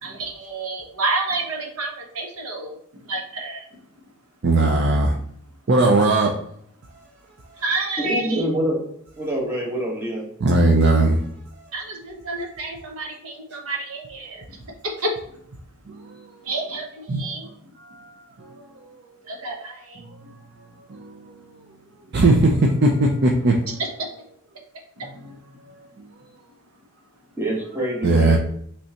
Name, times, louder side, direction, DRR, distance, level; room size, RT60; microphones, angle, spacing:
voice 1, 0.0-3.7 7.6-8.4 11.7-14.6 14.8-15.1 16.4-17.7 19.3-20.3 23.7-23.9 25.0-25.3, right 2 dB, 75° right, 2 dB, 0.9 m, -30 dB
voice 2, 4.4-5.2 5.7-6.4 10.4-11.2 15.9-16.3 17.1-17.2 17.8-18.8 20.1-20.3 20.6-21.5 22.1-23.7 28.0-28.4, right 2 dB, 50° right, 1 dB, 0.5 m, -19 dB
voice 3, 8.0-8.8 9.2-10.2 27.4-28.4, right 1 dB, 10° right, -4 dB, 1.2 m, -25 dB
5.4 x 3.3 x 2.9 m, 0.69 s
head